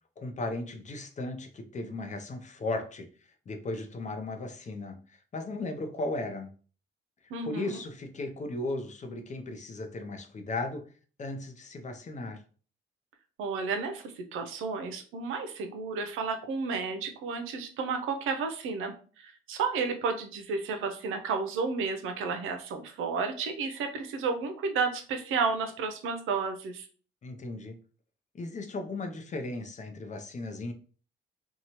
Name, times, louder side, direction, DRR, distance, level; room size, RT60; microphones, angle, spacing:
voice 1, 0.2-3.1 3.5-6.5 7.5-10.9 11.2-12.4 27.2-27.8 28.3-30.7, left 2 dB, 35° left, 6 dB, 0.6 m, -36 dB
voice 2, 7.3-7.8 13.4-26.9, right 5 dB, 85° right, 6 dB, 0.6 m, -32 dB
2.8 x 2.2 x 2.9 m, 0.40 s
cardioid pair, 85°, 20 cm